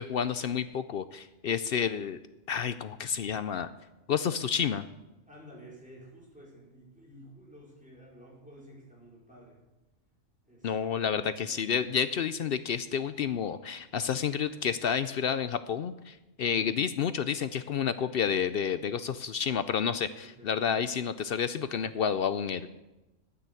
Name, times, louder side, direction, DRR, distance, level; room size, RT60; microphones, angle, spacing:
voice 1, 0.0-2.2 2.5-3.7 4.1-4.9 10.6-22.7, left 7 dB, 60° left, 12 dB, 0.7 m, -30 dB
voice 2, 5.3-9.6 10.5-10.7 11.0-11.3 16.4-16.7 20.2-20.6, right 1 dB, 5° right, -6 dB, 4.9 m, -52 dB
9.7 x 9.2 x 8.4 m, 1.0 s
omnidirectional pair, 1.3 m